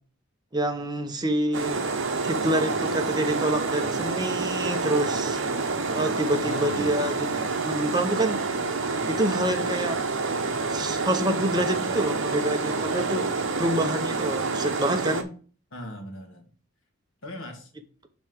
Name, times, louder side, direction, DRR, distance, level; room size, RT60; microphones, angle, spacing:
voice 1, 0.5-1.9 2.2-5.4 5.9-8.4 9.1-10.0 10.7-13.2 13.6-15.3, right 1 dB, 20° right, 0.9 m, -27 dB
sound 1, 1.5-15.2, right 3 dB, 60° right, 0.9 m, -28 dB
voice 2, 6.4-7.6 15.7-16.5 17.2-17.7, left 1 dB, 65° left, 1.8 m, -40 dB
5.4 x 4.5 x 6.1 m
head